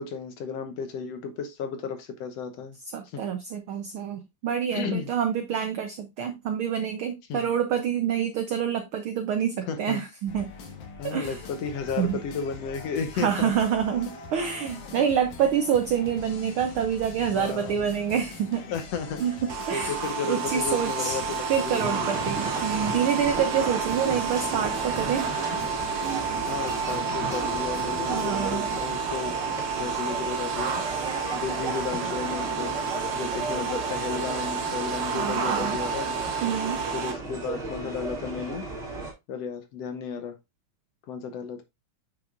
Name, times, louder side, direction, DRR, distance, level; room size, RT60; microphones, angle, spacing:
voice 1, 0.0-2.8 3.1-3.2 4.7-5.1 7.3-7.5 9.7-10.0 11.0-13.5 17.3-17.9 18.7-19.2 19.7-22.1 26.5-29.4 29.8-30.7 31.3-32.7 33.1-36.2 36.9-38.7 39.3-40.4 41.1-41.6, left 6 dB, 70° left, 1.8 m, -33 dB
voice 2, 2.9-10.5 11.0-11.4 12.0-12.2 13.1-18.7 19.2-20.0 20.3-21.2 21.5-25.3 28.1-28.7 35.1-35.8 36.4-36.8, right 8 dB, 80° right, 1.2 m, -27 dB
sound 1, 10.3-28.4, left 4 dB, 85° left, 2.8 m, -43 dB
sound 2, 19.5-37.1, right 6 dB, 55° right, 1.9 m, -30 dB
sound 3, 21.8-39.1, right 2 dB, 25° right, 2.5 m, -36 dB
7.7 x 5.8 x 2.5 m
omnidirectional pair, 3.3 m